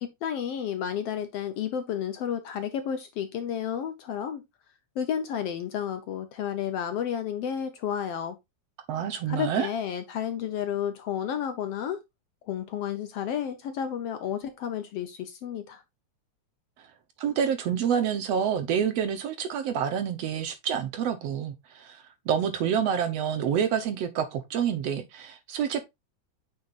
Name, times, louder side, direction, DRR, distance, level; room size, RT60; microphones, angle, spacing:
voice 1, 0.0-4.4 5.0-8.4 9.3-12.0 12.5-15.8, left 9 dB, 65° left, 1.6 m, -31 dB
voice 2, 8.9-9.7 17.2-22.0 22.3-25.8, right 8 dB, 65° right, 1.9 m, -28 dB
9.2 x 5.9 x 2.5 m
omnidirectional pair, 3.4 m